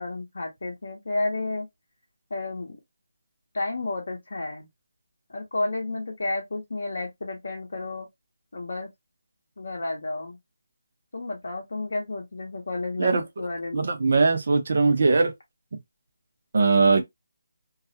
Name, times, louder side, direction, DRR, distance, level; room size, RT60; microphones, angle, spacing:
voice 1, 0.0-1.7 2.3-2.8 3.5-4.7 5.3-8.1 8.5-8.9 9.6-10.4 11.1-13.9, left 2 dB, 60° left, 0.7 m, -31 dB
voice 2, 13.7-15.3 16.5-17.0, right 4 dB, 40° right, 0.5 m, -20 dB
2.3 x 2.0 x 2.7 m
hypercardioid pair, 175°, 0 cm